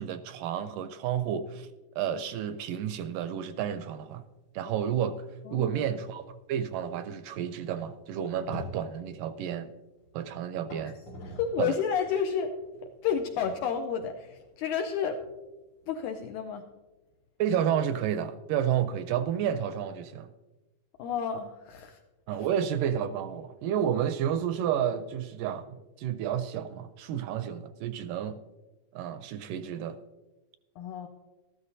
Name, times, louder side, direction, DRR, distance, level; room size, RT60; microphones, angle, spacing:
voice 1, 0.0-1.7 2.0-4.2 4.5-5.3 5.5-9.7 10.1-11.0 11.6-11.8 17.4-20.3 22.3-28.4 28.9-30.0, right 9 dB, 80° right, 11 dB, 2.0 m, -31 dB
sound 1, 3.5-4.0 4.3-4.4 5.1-5.2 5.6-11.7 12.1-16.4, equal, 60° left, 3.4 m, -48 dB
voice 2, 5.4-5.8 11.2-12.6 13.0-15.2 15.9-16.7 21.0-22.0 22.3-22.5 30.8-31.1, left 7 dB, 80° left, 5 dB, 1.8 m, -31 dB
14.0 x 12.5 x 2.6 m, 1.1 s
omnidirectional pair, 4.1 m